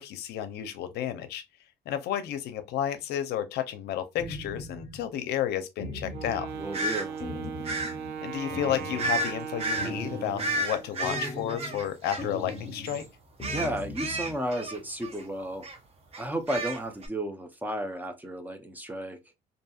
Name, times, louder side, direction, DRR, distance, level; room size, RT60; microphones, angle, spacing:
voice 1, 0.0-1.4 1.9-6.5 8.2-13.1, left 10 dB, 75° left, 0.5 m, -32 dB
sound 1, 4.2-5.0 5.8-6.7 7.2-8.2 8.5-9.3 9.8-10.6 11.0-11.9 12.2-13.0 13.4-14.4, left 2 dB, 20° left, 1.2 m, -39 dB
Wind instrument woodwind instrument, 6.1-10.9, right 7 dB, 90° right, 0.5 m, -38 dB
voice 2, 6.6-7.2 13.4-15.7 16.2-19.2, right 1 dB, 10° right, 0.5 m, -33 dB
sound 2, 6.7-7.0 7.6-7.9 9.0-9.3 9.6-9.9 10.4-12.6 12.9-13.0 13.4-15.2 15.6-15.8 16.1-17.1, right 2 dB, 35° right, 0.8 m, -32 dB
2.7 x 2.6 x 2.3 m
cardioid pair, 110°, 17 cm